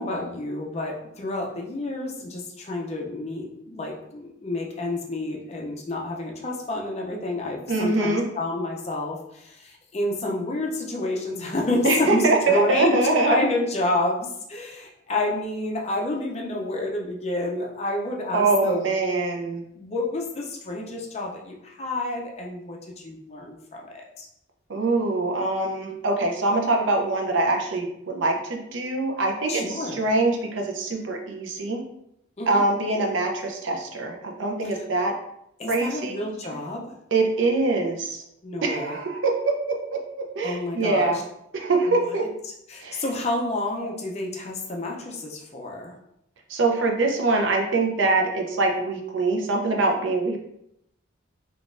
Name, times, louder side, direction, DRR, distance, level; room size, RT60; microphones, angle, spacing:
voice 1, 0.0-18.8 19.7-24.3 29.5-30.0 32.4-32.6 35.6-36.9 38.4-39.0 40.4-41.1 42.7-45.9, left 2 dB, 35° left, 0 dB, 0.5 m, -29 dB
voice 2, 7.7-8.3 11.8-13.4 18.3-19.6 24.7-31.9 32.5-35.2 35.7-36.2 37.1-38.2 38.6-41.2 41.5-42.3 42.8-43.0 43.8-43.9 46.5-50.4, right 2 dB, 75° right, 2 dB, 0.5 m, -24 dB
3.7 x 2.4 x 2.4 m, 0.79 s
head